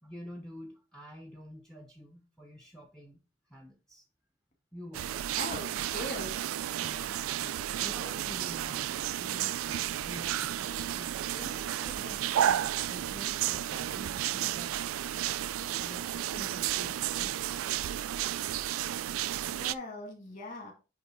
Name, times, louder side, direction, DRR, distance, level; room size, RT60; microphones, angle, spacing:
voice 1, 0.0-4.0 4.7-5.2 6.8-14.8 15.6-17.7, equal, 5° left, 5 dB, 0.8 m, -48 dB
sound 1, 4.9-19.7, right 11 dB, 80° right, 0.3 m, -32 dB
voice 2, 5.3-6.4 19.5-20.7, left 1 dB, 35° left, 2 dB, 2.3 m, -40 dB
9.3 x 3.3 x 4.3 m, 0.31 s
head